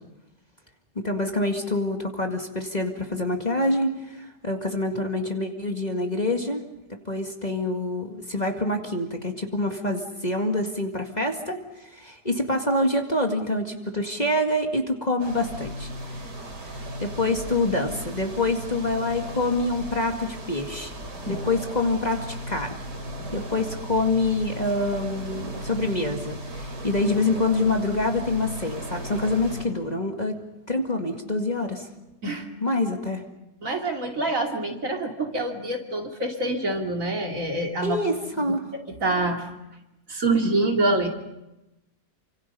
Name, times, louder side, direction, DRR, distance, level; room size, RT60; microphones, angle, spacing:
voice 1, 1.0-6.6 7.1-16.2 16.6-20.9 21.3-22.8 23.3-30.4 30.7-31.9 32.6-33.2 37.8-38.6, left 2 dB, 25° left, 3 dB, 2.0 m, -26 dB
sound 1, 15.2-29.7, equal, 90° right, 4.0 m, -36 dB
voice 2, 33.6-38.0 38.3-39.5 40.1-41.1, right 2 dB, 55° right, 2 dB, 2.9 m, -26 dB
28.5 x 26.0 x 5.5 m, 0.95 s
omnidirectional pair, 1.7 m